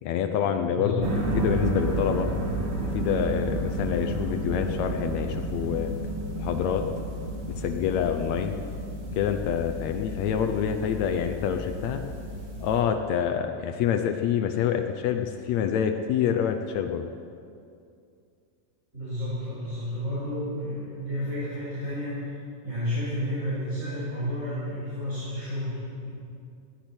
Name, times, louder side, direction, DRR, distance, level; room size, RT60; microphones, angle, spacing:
voice 1, 0.0-2.3 2.8-5.9 6.4-6.9 7.5-8.6 9.2-12.0 12.6-17.1, left 8 dB, 90° left, 6 dB, 1.5 m, -27 dB
voice 2, 0.7-1.1 18.9-22.3 22.6-26.1, equal, 20° right, -12 dB, 5.8 m, -31 dB
sound 1, 1.0-12.8, right 1 dB, 85° right, 4.2 m, -31 dB
20.5 x 16.0 x 4.5 m, 2.5 s
omnidirectional pair, 4.1 m